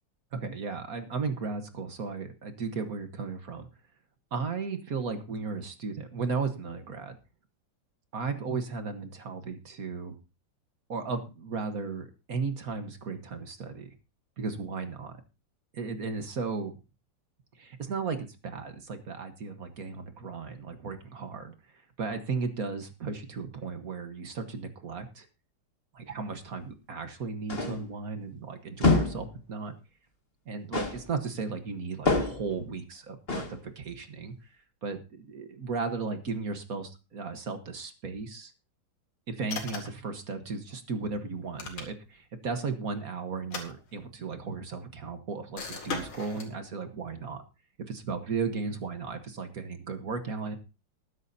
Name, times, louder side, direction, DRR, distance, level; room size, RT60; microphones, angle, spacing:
voice 1, 0.3-3.7 4.3-7.2 8.1-10.1 10.9-13.9 14.4-15.1 15.7-16.8 17.6-25.3 25.9-29.7 30.5-34.3 34.8-38.5 39.3-47.4 47.9-50.6, right 4 dB, 45° right, 8 dB, 1.4 m, -35 dB
sound 1, 27.5-27.9 28.8-29.3 30.7-31.1 32.1-32.5 33.3-33.6, left 3 dB, 30° left, 2.0 m, -26 dB
sound 2, 39.5-40.1 41.4-42.2 43.4-44.3 45.6-46.5, left 4 dB, 70° left, 3.0 m, -39 dB
20.0 x 9.6 x 2.7 m, 0.29 s
omnidirectional pair, 2.4 m